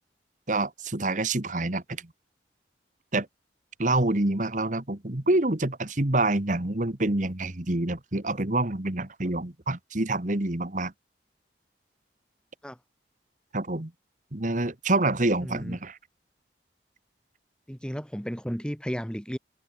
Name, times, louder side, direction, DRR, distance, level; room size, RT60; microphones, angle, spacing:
voice 1, 0.5-2.0 3.1-3.3 3.8-10.9 13.5-13.9 14.3-16.0, right 2 dB, 45° right, 1.7 m, -27 dB
voice 2, 15.4-15.8 17.7-19.4, equal, 5° left, 2.9 m, -33 dB
head